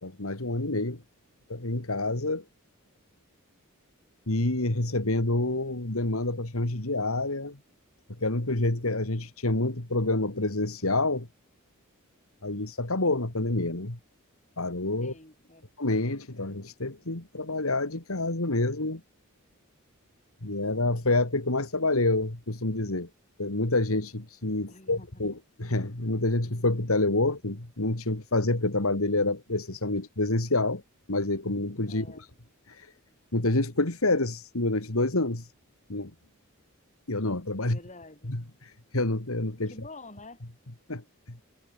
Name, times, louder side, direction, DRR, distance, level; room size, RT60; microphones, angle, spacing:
voice 1, 0.0-1.0 1.5-2.4 4.3-7.6 8.2-11.3 12.4-14.0 14.6-15.1 15.8-19.0 20.4-23.1 23.4-30.8 31.1-32.3 32.7-32.9 33.3-35.5 35.9-36.1 37.1-37.8 38.2-39.7 40.9-41.4, left 2 dB, 70° left, 2.5 m, -28 dB
voice 2, 15.0-15.7 24.7-25.2 31.9-32.3 37.6-38.3 39.7-40.4, left 2 dB, 35° left, 7.7 m, -48 dB
head